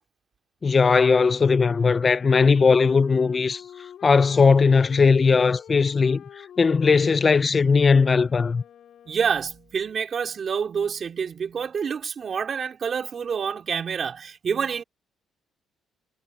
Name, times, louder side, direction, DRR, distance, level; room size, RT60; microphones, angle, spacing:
voice 1, 0.6-3.6 4.0-6.2 6.6-8.6, left 5 dB, 35° left, 0.5 m, -18 dB
Wind instrument woodwind instrument, 1.4-9.8, left 9 dB, 70° left, 5.1 m, -48 dB
voice 2, 9.1-14.8, right 6 dB, 50° right, 4.3 m, -27 dB
cardioid pair, 90°, 0 cm